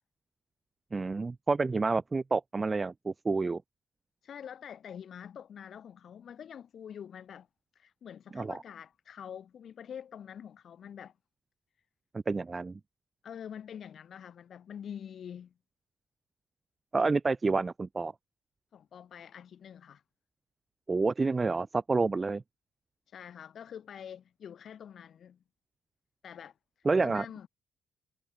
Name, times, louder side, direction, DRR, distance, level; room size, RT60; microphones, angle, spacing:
voice 1, 0.9-3.6 8.3-8.6 12.1-12.8 16.9-18.1 20.9-22.4 26.8-27.2, right 3 dB, 25° right, 1.5 m, -29 dB
voice 2, 4.2-7.5 7.7-11.2 13.2-15.5 18.7-20.0 23.1-25.4 26.2-26.5 27.0-27.5, left 8 dB, 60° left, 4.7 m, -46 dB
cardioid pair, 90°, 0 cm